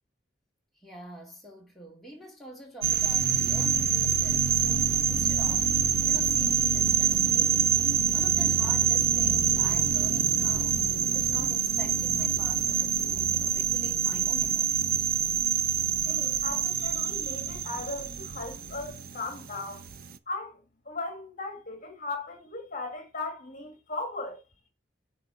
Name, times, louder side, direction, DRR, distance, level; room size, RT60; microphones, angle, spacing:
voice 1, 0.7-10.8 11.1-15.1, right 1 dB, ahead, 2.7 m, -46 dB
sound 1, 2.8-20.2, right 8 dB, 55° right, 0.6 m, -26 dB
voice 2, 16.0-19.9 20.3-24.4, left 3 dB, 45° left, 1.7 m, -37 dB
9.1 x 3.4 x 5.6 m
head